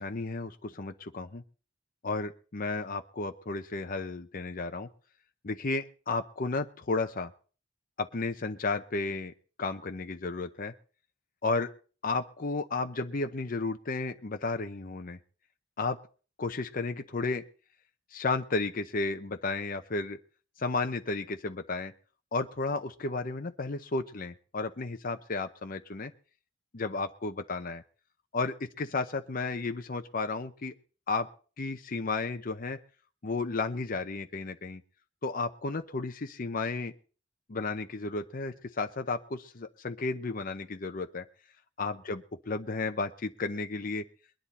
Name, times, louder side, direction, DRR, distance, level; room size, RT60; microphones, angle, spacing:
voice 1, 0.0-1.4 2.0-4.9 5.4-7.3 8.0-9.3 9.6-10.7 11.4-11.7 12.0-15.2 15.8-16.0 16.4-17.4 18.1-20.2 20.6-21.9 22.3-26.1 26.7-27.8 28.3-30.7 31.1-31.3 31.6-32.8 33.2-34.8 35.2-36.9 37.5-41.2 41.8-44.0, left 3 dB, 45° left, 6 dB, 0.7 m, -33 dB
21.5 x 10.5 x 4.2 m, 0.39 s
head